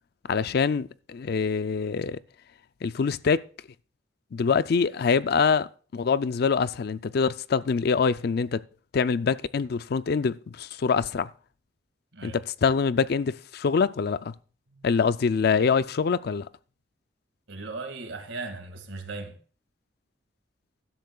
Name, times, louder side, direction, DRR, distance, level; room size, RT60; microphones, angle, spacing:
voice 1, 0.3-2.2 2.8-3.4 4.3-8.6 8.9-11.3 12.2-14.3 14.8-16.5, left 5 dB, 55° left, 0.4 m, -25 dB
voice 2, 17.5-19.4, right 3 dB, 85° right, 2.0 m, -37 dB
16.0 x 12.0 x 2.3 m
head